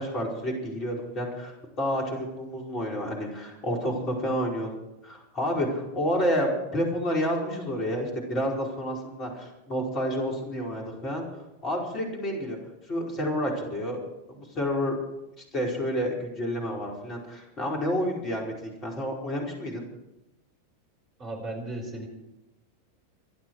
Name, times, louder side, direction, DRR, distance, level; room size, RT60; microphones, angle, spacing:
voice 1, 0.0-4.8 5.0-12.6 12.8-14.0 14.3-15.0 15.4-19.8, equal, 30° left, 0 dB, 5.1 m, -30 dB
voice 2, 21.2-22.1, right 1 dB, 30° right, 3 dB, 4.7 m, -35 dB
25.0 x 11.5 x 4.9 m, 0.91 s
figure-of-eight pair, 90°, 0 cm